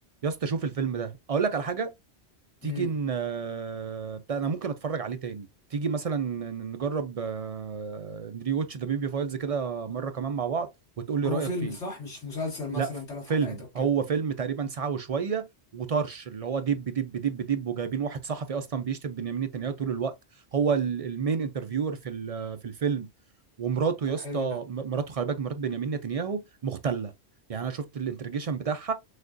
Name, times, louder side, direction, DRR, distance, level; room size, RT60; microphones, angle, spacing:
voice 1, 0.2-1.9 2.6-10.7 11.0-11.8 12.7-12.9 13.3-15.5 15.7-20.1 20.5-23.1 23.6-27.1 27.5-28.9, right 6 dB, 55° right, 0.4 m, -30 dB
voice 2, 11.2-13.9 24.1-24.6, left 3 dB, 90° left, 2.0 m, -35 dB
6.3 x 2.4 x 2.5 m
omnidirectional pair, 1.1 m